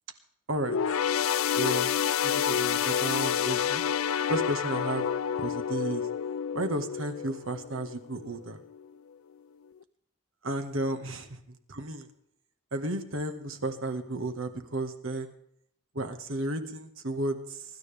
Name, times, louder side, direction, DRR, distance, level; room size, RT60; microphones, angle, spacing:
sound 1, 0.6-8.3 8.7-8.9 9.8-9.9, left 8 dB, 90° left, 0.5 m, -29 dB
voice 1, 1.6-1.9 2.2-3.8 4.3-5.1 5.4-6.1 6.5-8.6 10.4-12.1 12.7-15.3 16.0-17.7, right 1 dB, 80° right, 8 dB, 1.8 m, -33 dB
24.0 x 12.5 x 3.5 m, 0.72 s
head